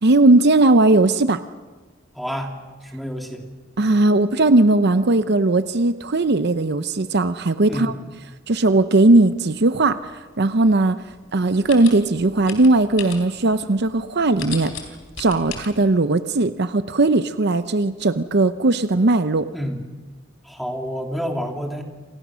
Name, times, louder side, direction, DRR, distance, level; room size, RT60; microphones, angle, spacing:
voice 1, 0.0-1.4 3.8-7.9 8.5-14.7 15.2-19.5, right 2 dB, 55° right, 11 dB, 0.8 m, -18 dB
voice 2, 2.1-2.5 2.8-3.4 7.7-8.0 19.5-19.8 20.4-21.8, equal, ahead, 2 dB, 3.0 m, -28 dB
sound 1, 9.8-15.7, left 6 dB, 85° left, 3.8 m, -38 dB
28.0 x 27.5 x 6.3 m, 1.3 s
head